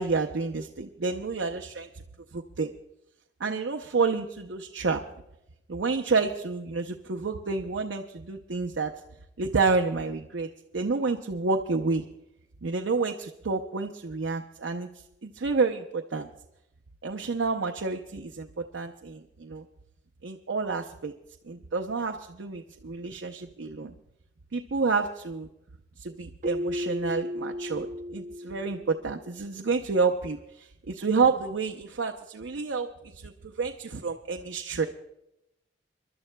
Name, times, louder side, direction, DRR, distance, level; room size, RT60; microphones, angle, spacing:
voice 1, 0.0-1.9 2.3-2.7 3.4-5.0 5.7-8.9 9.4-10.5 10.7-12.0 12.6-14.9 15.2-16.3 17.0-19.6 20.2-21.1 21.4-23.9 24.5-25.5 26.0-32.9 33.2-34.9, right 4 dB, 80° right, 3 dB, 0.7 m, -29 dB
Keyboard (musical), 26.4-29.2, left 1 dB, 40° right, 0.7 m, -34 dB
29.5 x 12.0 x 2.2 m, 0.85 s
head